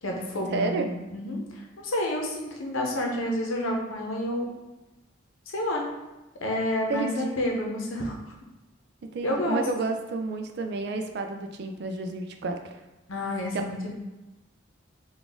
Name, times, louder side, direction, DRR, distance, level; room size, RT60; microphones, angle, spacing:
voice 1, 0.0-4.5 5.5-5.8 6.4-8.1 9.2-9.6 13.1-13.9, left 1 dB, 90° left, 0 dB, 0.8 m, -29 dB
voice 2, 0.5-0.9 6.9-7.4 9.1-12.8, right 3 dB, 55° right, 5 dB, 0.3 m, -30 dB
3.9 x 2.3 x 3.5 m, 1.0 s
head